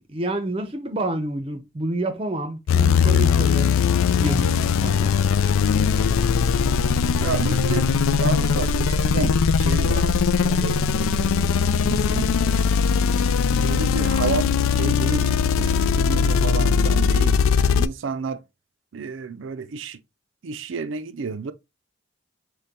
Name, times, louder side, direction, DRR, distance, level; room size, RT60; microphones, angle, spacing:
voice 1, 0.0-3.7 4.2-5.1, right 1 dB, 30° right, 0.6 m, -28 dB
sound 1, 2.7-17.9, left 6 dB, 90° left, 0.3 m, -20 dB
voice 2, 7.2-7.9 8.2-10.1 10.4-12.3 13.5-18.4 18.9-20.0 20.4-21.5, right 5 dB, 70° right, 0.5 m, -31 dB
6.6 x 2.2 x 3.5 m
head